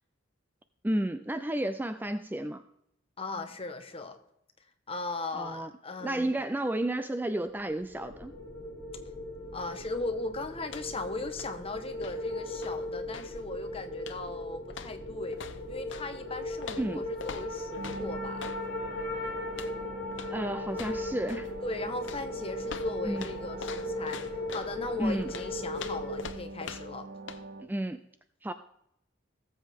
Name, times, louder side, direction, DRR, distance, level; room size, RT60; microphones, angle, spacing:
voice 1, 0.8-2.6 5.3-5.7 6.0-8.3 16.7-17.0 20.3-21.5 23.0-23.3 25.0-25.3 27.6-28.0 28.4-28.5, right 1 dB, 10° right, 10 dB, 0.4 m, -32 dB
voice 2, 3.2-4.2 4.9-6.3 9.5-18.5 21.6-27.1, left 2 dB, 30° left, 7 dB, 1.2 m, -38 dB
sound 1, 7.6-26.2, left 1 dB, 15° left, 3.5 m, -38 dB
sound 2, 10.6-11.1 11.3-13.4 14.0-14.4 14.7-16.1 16.6-18.6 19.5-19.8 20.1-20.4 20.7-21.5 22.0-24.7 25.3-27.0 27.3-27.4, left 5 dB, 75° left, 0.8 m, -44 dB
sound 3, 17.8-27.6, right 3 dB, 55° right, 0.9 m, -45 dB
18.5 x 7.6 x 3.6 m, 0.77 s
head